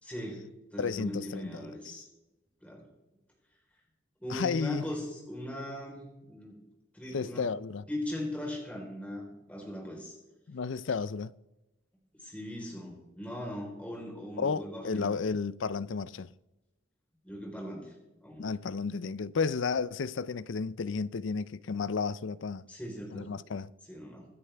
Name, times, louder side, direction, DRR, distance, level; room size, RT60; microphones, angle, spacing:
voice 1, 0.0-0.4 0.7-2.1 2.6-2.8 4.2-6.6 6.9-7.5 7.9-10.1 12.2-15.1 17.2-17.9 18.2-18.5 22.7-23.3 23.9-24.3, left 1 dB, 5° left, 4.0 m, -39 dB
voice 2, 0.8-2.0 4.3-4.8 7.1-7.8 10.5-11.3 14.4-16.3 18.4-22.6 23.1-23.7, left 5 dB, 70° left, 0.5 m, -32 dB
25.5 x 10.0 x 3.4 m
head